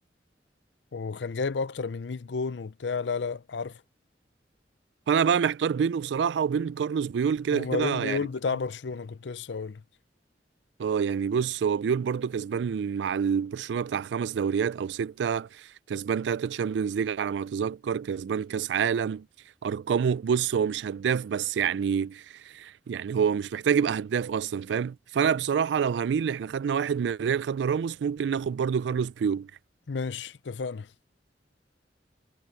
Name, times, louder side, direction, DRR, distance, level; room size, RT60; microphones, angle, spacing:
voice 1, 0.9-3.7 7.5-9.8 29.9-30.9, left 4 dB, 85° left, 0.6 m, -31 dB
voice 2, 5.1-8.3 10.8-19.3 19.6-29.5, right 7 dB, 80° right, 0.3 m, -27 dB
head